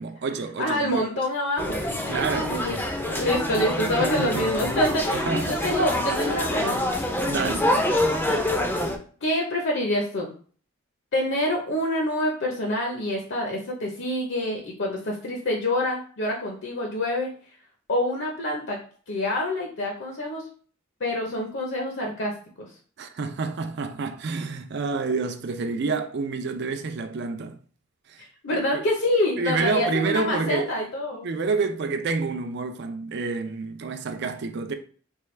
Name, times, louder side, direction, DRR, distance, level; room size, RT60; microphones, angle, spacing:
voice 1, 0.0-1.0 2.1-2.6 4.0-4.5 5.1-5.6 7.2-7.8 23.0-27.6 28.1-28.2 28.5-28.8 29.4-30.7 31.2-34.7, right 4 dB, 55° right, 0.4 m, -28 dB
voice 2, 0.6-2.2 2.5-2.8 3.0-7.0 9.2-10.3 11.1-17.3 17.9-18.8 19.1-20.4 21.0-22.3 22.6-22.7 28.4-31.3, left 1 dB, 60° left, 0.7 m, -26 dB
sound 1, 1.6-9.0, left 1 dB, 10° left, 0.4 m, -26 dB
4.4 x 2.2 x 3.2 m
head